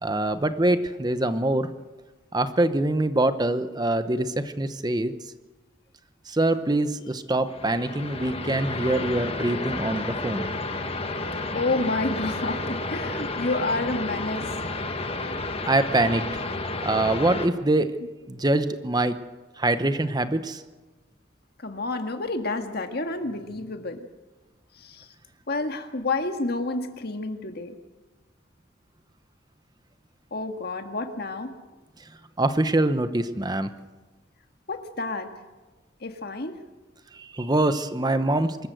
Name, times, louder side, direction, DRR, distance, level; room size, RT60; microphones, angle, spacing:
voice 1, 0.0-1.7 2.3-5.1 6.3-10.5 15.6-16.4 16.8-18.0 18.3-19.1 19.6-20.6 32.4-33.7 37.1-38.7, right 2 dB, 20° right, 10 dB, 0.9 m, -24 dB
sound 1, 7.5-17.5, left 2 dB, 30° left, 1.4 m, -31 dB
voice 2, 11.5-14.6 21.6-24.1 24.7-25.1 25.5-27.8 30.3-31.5 34.7-35.3 36.0-36.6, left 2 dB, 55° left, 6 dB, 1.8 m, -29 dB
25.0 x 14.0 x 7.9 m, 1.2 s
head